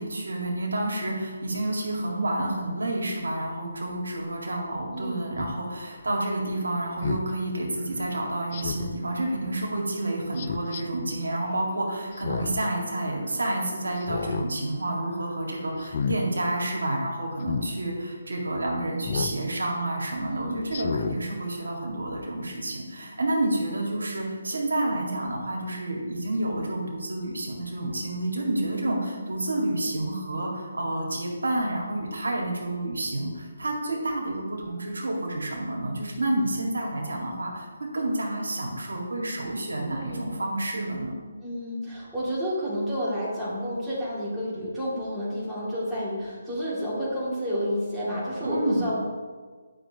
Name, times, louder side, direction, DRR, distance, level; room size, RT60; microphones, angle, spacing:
voice 1, 0.0-41.2 48.4-48.9, right 1 dB, 75° right, -1 dB, 1.8 m, -29 dB
voice 2, 4.9-5.2 20.3-20.6 28.7-29.0 39.9-40.3 41.4-49.0, equal, 5° right, -10 dB, 2.4 m, -30 dB
Speech synthesizer, 5.4-5.6 7.0-7.3 8.5-9.0 10.4-10.8 12.1-12.7 13.0-13.1 14.0-14.5 14.9-15.2 15.8-16.2 17.4-17.7 19.1-19.4 19.9-20.0 20.7-21.2 21.6-21.7, left 6 dB, 40° left, 0.4 m, -31 dB
9.9 x 5.8 x 2.9 m, 1.5 s
figure-of-eight pair, 150°, 0 cm